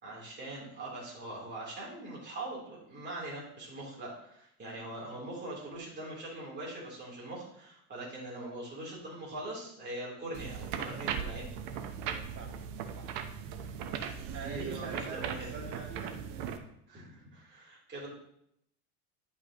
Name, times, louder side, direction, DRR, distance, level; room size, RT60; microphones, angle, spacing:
voice 1, 0.0-11.5 14.2-15.5 16.9-18.1, right 2 dB, 25° right, -5 dB, 3.4 m, -42 dB
sound 1, 10.3-16.6, right 7 dB, 70° right, 1.0 m, -38 dB
voice 2, 13.4-13.9 14.3-16.7, right 4 dB, 45° right, 0 dB, 2.4 m, -45 dB
10.5 x 5.7 x 3.0 m, 0.73 s
supercardioid pair, 105°, 42 cm